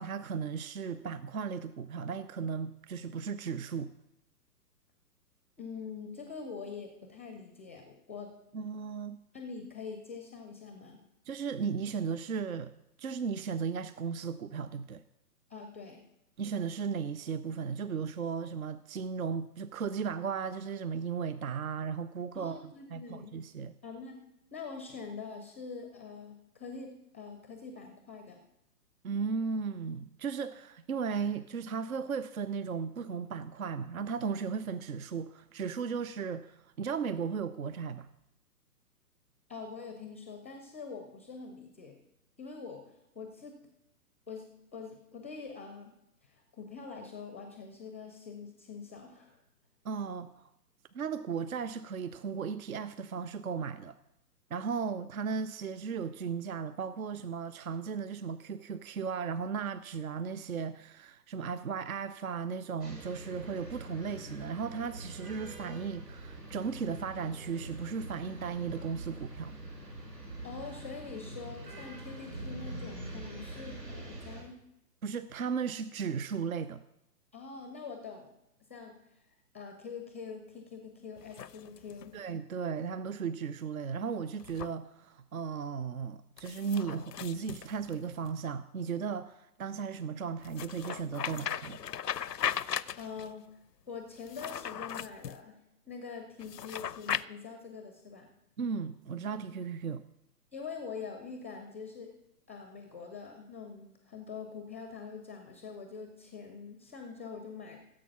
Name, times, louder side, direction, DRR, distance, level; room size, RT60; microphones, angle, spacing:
voice 1, 0.0-3.9 8.5-9.2 11.3-12.7 13.0-15.0 16.4-23.7 29.0-38.1 49.8-50.5 50.9-54.0 54.5-69.5 75.0-76.8 82.1-91.8 98.6-100.0, right 6 dB, 60° right, 0.6 m, -36 dB
voice 2, 5.6-8.3 9.3-11.0 15.5-16.0 22.3-23.3 23.8-24.2 24.5-28.4 39.5-41.9 42.4-42.8 43.1-43.6 44.3-45.9 46.2-49.4 70.4-74.6 77.3-78.3 78.7-79.0 79.5-82.2 93.0-93.6 93.9-95.6 95.9-98.3 100.5-102.1 102.5-107.8, left 5 dB, 10° left, 0.5 m, -44 dB
sound 1, 62.8-74.4, right 1 dB, 80° right, 4.3 m, -44 dB
sound 2, 81.2-82.1 84.4-84.7 86.4-88.3 90.4-93.3 94.2-95.4 96.4-97.2, left 9 dB, 80° left, 0.6 m, -38 dB
15.5 x 7.5 x 5.8 m
figure-of-eight pair, 125°, 48 cm